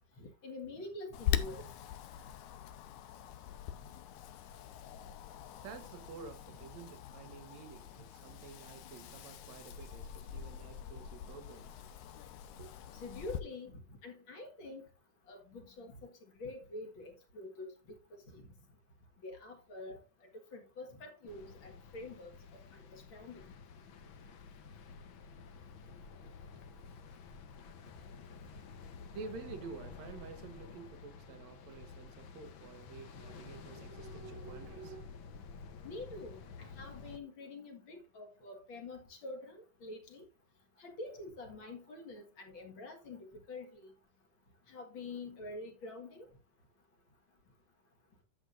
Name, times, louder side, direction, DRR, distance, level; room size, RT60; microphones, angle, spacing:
voice 1, 0.2-1.7 12.9-14.8 15.3-16.1 16.4-17.7 18.3-18.4 19.2-20.0 20.5-22.3 22.7-23.4 35.8-40.2 40.8-43.9 44.7-46.3, left 2 dB, 45° left, 2.2 m, -46 dB
Wind, 1.1-13.4, left 10 dB, 90° left, 2.2 m, -42 dB
voice 2, 5.6-11.8 12.6-12.8 26.5-26.6 29.1-35.1, right 5 dB, 70° right, 2.5 m, -50 dB
sound 1, 21.3-37.2, left 5 dB, 60° left, 1.3 m, -51 dB
11.5 x 7.9 x 2.5 m
omnidirectional pair, 3.3 m